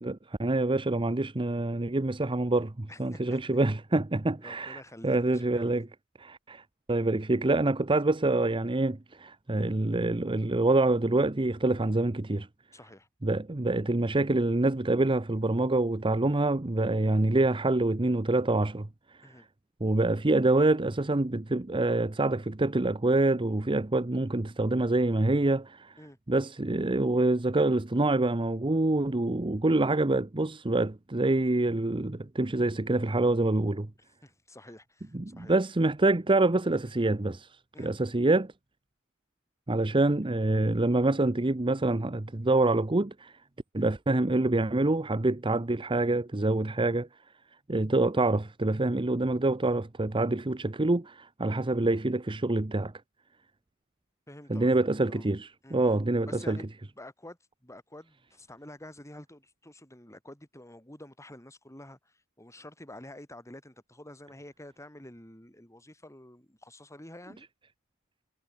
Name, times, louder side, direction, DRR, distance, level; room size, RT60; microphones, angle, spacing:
voice 1, 0.0-5.9 6.2-12.5 13.2-19.4 19.8-26.0 26.3-33.9 35.1-37.5 37.8-38.5 39.7-43.4 43.7-47.1 47.7-52.9 54.5-56.6, right 2 dB, 25° right, 0.8 m, -26 dB
voice 2, 2.9-3.6 4.4-5.8 9.5-9.7 12.7-13.1 19.2-19.5 26.0-26.2 34.2-35.6 37.7-37.9 54.3-55.3 55.6-55.8 56.2-67.5, left 1 dB, 15° left, 6.6 m, -49 dB
head